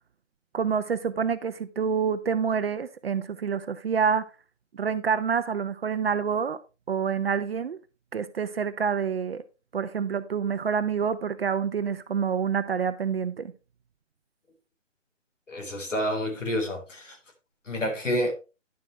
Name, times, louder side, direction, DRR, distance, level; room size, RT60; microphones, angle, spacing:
voice 1, 0.5-4.3 4.7-6.6 6.9-7.8 8.1-9.4 9.7-13.5, right 6 dB, 55° right, 0.8 m, -27 dB
voice 2, 15.5-17.2 17.7-18.3, equal, 90° left, 4.1 m, -28 dB
11.0 x 7.5 x 3.2 m
figure-of-eight pair, 155°, 36 cm